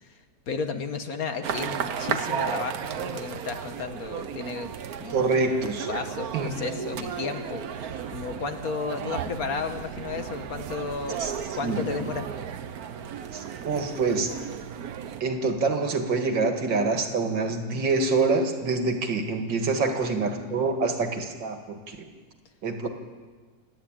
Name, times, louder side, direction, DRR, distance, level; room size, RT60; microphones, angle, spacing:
voice 1, 0.5-4.7 5.0-5.3 5.9-11.2 11.5-12.3 19.8-20.2, left 5 dB, 55° left, 7 dB, 1.7 m, -33 dB
sound 1, 1.4-15.2, right 8 dB, 60° right, 1.3 m, -34 dB
voice 2, 5.1-5.9 6.3-6.7 11.2-11.3 11.6-11.9 13.3-14.3 15.2-22.1 22.6-22.9, right 3 dB, 85° right, 5 dB, 2.5 m, -26 dB
28.0 x 11.0 x 8.9 m, 1.4 s
omnidirectional pair, 2.0 m